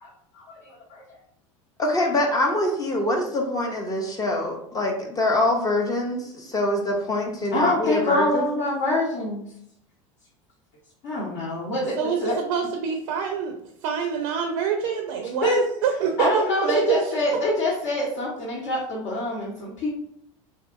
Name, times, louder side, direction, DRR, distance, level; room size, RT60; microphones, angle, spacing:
voice 1, 0.3-1.0 7.5-9.4 11.0-12.4 15.4-15.6 16.2-19.9, left 1 dB, 60° left, -5 dB, 0.8 m, -25 dB
voice 2, 1.8-8.5, left 1 dB, 20° left, 0 dB, 0.5 m, -24 dB
voice 3, 11.9-13.5 13.8-16.8, right 7 dB, 70° right, 3 dB, 0.4 m, -26 dB
2.6 x 2.5 x 2.4 m, 0.71 s
hypercardioid pair, 95°, 17 cm